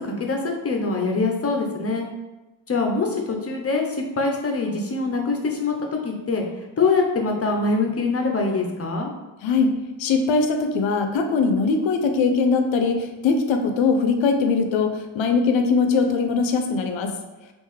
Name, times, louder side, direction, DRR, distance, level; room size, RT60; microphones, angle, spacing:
voice 1, 0.0-2.1 2.7-6.4 6.8-9.1, left 3 dB, 30° left, 2 dB, 0.7 m, -24 dB
voice 2, 9.4-17.1, left 4 dB, 70° left, 5 dB, 0.6 m, -21 dB
3.5 x 2.6 x 3.2 m, 1.1 s
cardioid pair, 70°, 48 cm